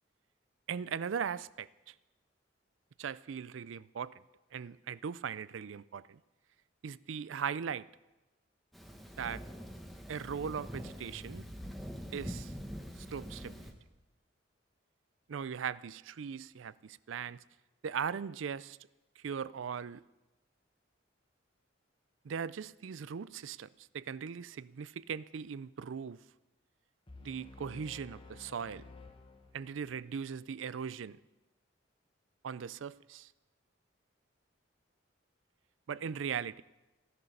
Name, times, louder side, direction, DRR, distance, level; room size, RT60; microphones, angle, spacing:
voice 1, 0.7-1.9 3.0-4.1 4.5-6.2 6.8-7.9 9.2-9.4 10.1-11.4 12.1-12.5 13.0-13.6 15.3-17.4 17.8-18.8 19.2-20.0 22.2-26.2 27.2-28.9 29.5-31.2 32.4-33.3 35.9-36.6, right 7 dB, 85° right, 0.4 m, -39 dB
Thunder, 8.7-13.7, equal, ahead, 1.3 m, -44 dB
sound 1, 27.1-30.0, left 3 dB, 25° left, 1.3 m, -53 dB
15.5 x 11.0 x 6.6 m
head